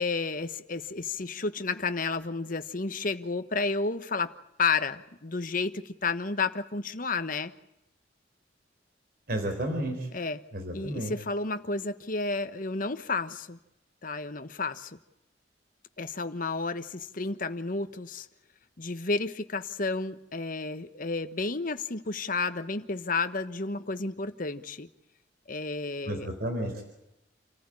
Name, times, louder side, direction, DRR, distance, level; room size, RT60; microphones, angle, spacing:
voice 1, 0.0-4.3 4.6-7.5 10.1-10.4 10.7-13.6 14.0-15.0 16.0-18.3 18.8-24.9 25.5-26.3, left 4 dB, 45° left, 10 dB, 1.3 m, -31 dB
voice 2, 9.3-10.1 10.5-11.1 26.1-26.8, right 1 dB, 55° right, 4 dB, 4.1 m, -32 dB
28.5 x 15.0 x 8.8 m, 0.86 s
head